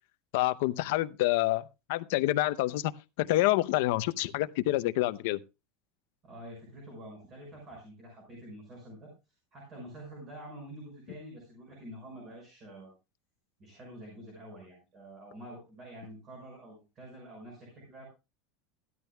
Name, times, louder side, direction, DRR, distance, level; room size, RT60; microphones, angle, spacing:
voice 1, 0.3-2.9 3.2-5.4, left 17 dB, 60° left, 0.6 m, -27 dB
voice 2, 6.2-9.1 9.5-12.9 13.6-18.0, right 1 dB, 25° right, 5.8 m, -47 dB
15.0 x 12.5 x 2.2 m
supercardioid pair, 170°, 0 cm